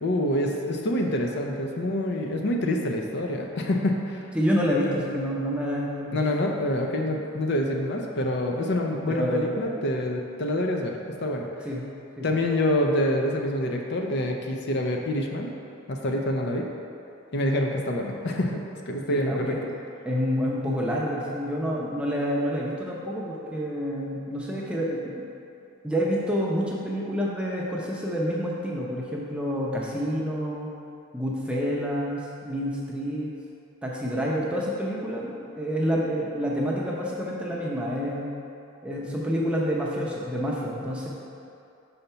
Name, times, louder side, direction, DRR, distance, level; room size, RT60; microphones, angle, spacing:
voice 1, 0.0-4.3 6.1-11.5 12.2-15.5 15.9-16.7 17.3-19.6, left 1 dB, 50° left, 1 dB, 0.5 m, -26 dB
voice 2, 4.3-6.2 7.1-7.2 9.1-9.6 11.6-11.8 12.2-12.3 19.1-19.6 20.1-25.2 25.8-30.7 31.1-33.3 33.8-38.3 38.8-41.1, equal, 5° right, -4 dB, 0.6 m, -28 dB
5.7 x 3.9 x 5.5 m, 2.7 s
head